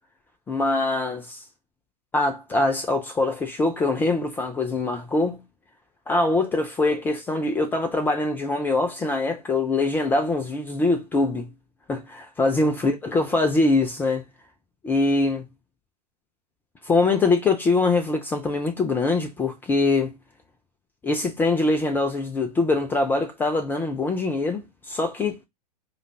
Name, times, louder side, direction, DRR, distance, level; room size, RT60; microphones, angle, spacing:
voice 1, 0.5-1.4 2.1-5.4 6.1-11.5 11.9-14.2 14.8-15.5 16.9-20.2 21.0-25.4, left 3 dB, 10° left, 0.4 m, -23 dB
4.9 x 2.3 x 2.7 m
figure-of-eight pair, 105°, 21 cm